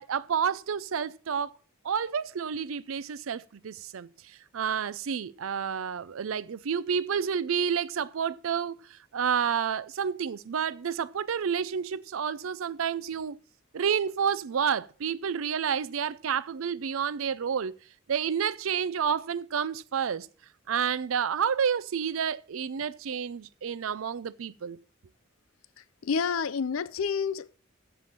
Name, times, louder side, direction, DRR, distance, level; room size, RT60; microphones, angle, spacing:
voice 1, 0.0-1.6 1.8-13.4 13.7-17.8 18.1-20.3 20.7-24.8, right 7 dB, 80° right, 0.5 m, -30 dB
voice 2, 26.0-27.6, left 6 dB, 85° left, 0.5 m, -29 dB
7.7 x 6.9 x 7.4 m
head